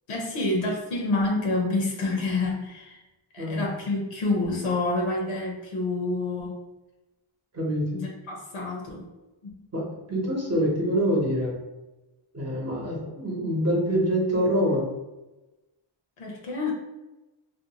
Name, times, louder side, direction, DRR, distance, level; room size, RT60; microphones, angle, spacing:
voice 1, 0.1-3.0 3.3-6.6 7.9-9.1 9.4-9.5 16.2-16.7, left 2 dB, 90° left, 0 dB, 0.7 m, -28 dB
voice 2, 7.5-7.9 9.7-11.6 12.3-14.8, equal, 30° right, -3 dB, 0.7 m, -25 dB
2.5 x 2.2 x 2.8 m, 1.1 s
wide cardioid pair, 120°, 49 cm